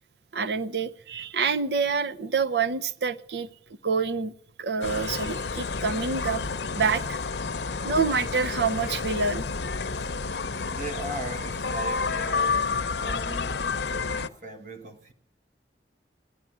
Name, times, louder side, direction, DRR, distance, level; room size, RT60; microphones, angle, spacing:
voice 1, 0.3-3.5 3.8-4.3 4.6-6.4 6.7-7.2 7.8-9.5, right 5 dB, 70° right, 0.6 m, -27 dB
sound 1, 4.8-14.3, left 4 dB, 75° left, 0.7 m, -30 dB
voice 2, 10.7-15.1, right 2 dB, 50° right, 1.4 m, -39 dB
17.0 x 11.0 x 7.4 m
head